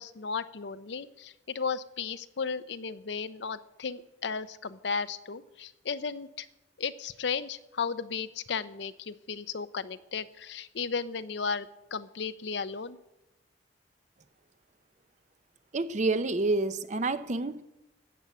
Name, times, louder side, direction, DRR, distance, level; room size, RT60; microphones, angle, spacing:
voice 1, 0.0-6.5 6.8-13.0, left 5 dB, 65° left, 13 dB, 0.6 m, -35 dB
voice 2, 15.7-17.6, right 2 dB, 40° right, 12 dB, 0.6 m, -28 dB
14.5 x 7.0 x 8.4 m, 0.94 s
head